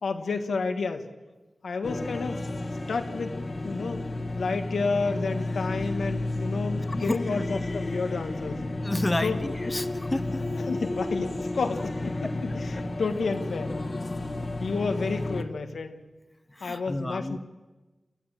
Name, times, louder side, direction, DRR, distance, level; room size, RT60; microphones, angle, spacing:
voice 1, 0.0-1.0 1.6-2.4 2.9-3.3 3.6-4.0 4.3-8.6 9.2-9.4 10.7-13.8 14.6-16.0 16.6-17.4, left 4 dB, 85° left, 6 dB, 1.6 m, -30 dB
sound 1, 1.8-15.4, left 2 dB, 50° left, 1.7 m, -32 dB
voice 2, 6.9-7.2 8.8-10.4 16.6-17.4, left 1 dB, 25° left, 9 dB, 1.1 m, -30 dB
28.5 x 14.5 x 7.5 m, 1.2 s
cardioid pair, 45°, 0 cm